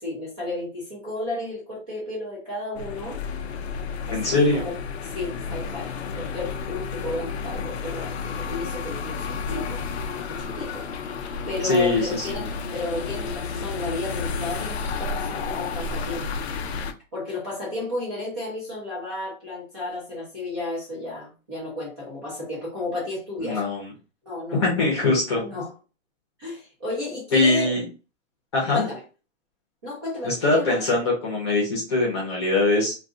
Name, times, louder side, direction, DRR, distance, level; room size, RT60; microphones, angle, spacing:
voice 1, 0.0-3.2 4.0-4.7 5.1-9.8 10.3-10.9 11.5-16.5 17.1-23.6 24.2-25.0 25.4-25.7 26.4-27.8 28.7-29.0 29.8-30.8, left 2 dB, 20° right, -6 dB, 0.7 m, -33 dB
sound 1, 2.7-16.9, left 5 dB, 55° left, 0.5 m, -31 dB
voice 2, 4.1-4.6 11.6-12.3 23.4-23.8 24.5-25.4 27.3-27.8 28.5-28.8 30.2-32.9, left 2 dB, 20° left, -3 dB, 0.9 m, -22 dB
2.6 x 2.5 x 3.7 m, 0.34 s
hypercardioid pair, 180°, 39 cm